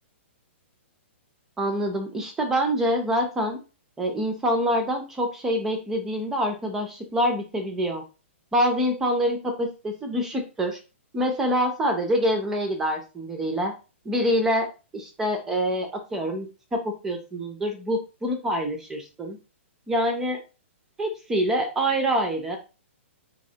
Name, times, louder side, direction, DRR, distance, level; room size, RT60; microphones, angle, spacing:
voice 1, 1.6-3.6 4.0-8.0 8.5-10.8 11.1-13.7 14.1-14.7 14.9-19.4 19.9-20.4 21.0-22.6, equal, 5° right, 4 dB, 0.3 m, -26 dB
4.1 x 2.8 x 2.7 m, 0.32 s
hypercardioid pair, 175°, 7 cm